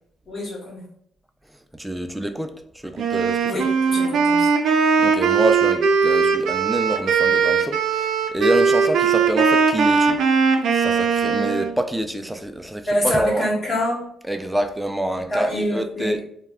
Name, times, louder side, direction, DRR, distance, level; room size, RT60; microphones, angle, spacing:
voice 1, 0.3-0.8 3.4-4.5 12.9-14.0 15.3-16.2, equal, 45° left, 1.0 m, -25 dB
voice 2, 1.7-2.6 2.8-3.7 5.0-10.2 10.7-13.5 14.2-16.2, right 1 dB, 5° right, 0.3 m, -26 dB
Wind instrument woodwind instrument, 3.0-11.7, right 5 dB, 75° right, 0.4 m, -19 dB
2.2 x 2.1 x 3.5 m
cardioid pair, 90°, 0 cm